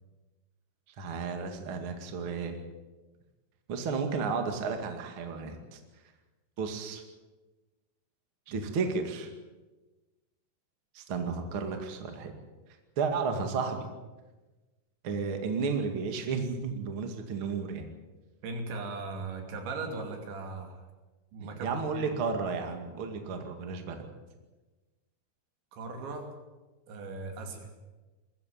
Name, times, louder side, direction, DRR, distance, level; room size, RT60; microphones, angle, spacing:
voice 1, 1.0-2.6 3.7-5.8 6.6-7.0 8.5-9.3 10.9-12.3 13.0-13.9 15.0-17.9 21.4-24.1, right 5 dB, 40° right, 5 dB, 2.2 m, -33 dB
voice 2, 18.4-20.9 21.3-22.1 25.7-26.3 26.9-27.7, right 3 dB, 85° right, 4 dB, 5.1 m, -38 dB
21.0 x 15.0 x 9.3 m, 1.2 s
omnidirectional pair, 5.1 m